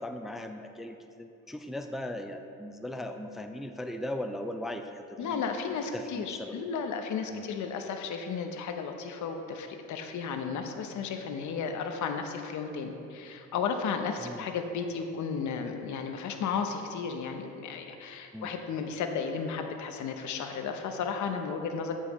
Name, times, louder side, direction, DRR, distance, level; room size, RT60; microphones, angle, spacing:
voice 1, 0.0-5.4 5.7-6.7 7.3-7.5 14.2-14.5 18.3-18.5, left 1 dB, ahead, 6 dB, 0.4 m, -38 dB
voice 2, 5.2-21.9, left 6 dB, 75° left, 5 dB, 0.8 m, -34 dB
13.5 x 5.6 x 3.1 m, 2.7 s
cardioid pair, 90°, 30 cm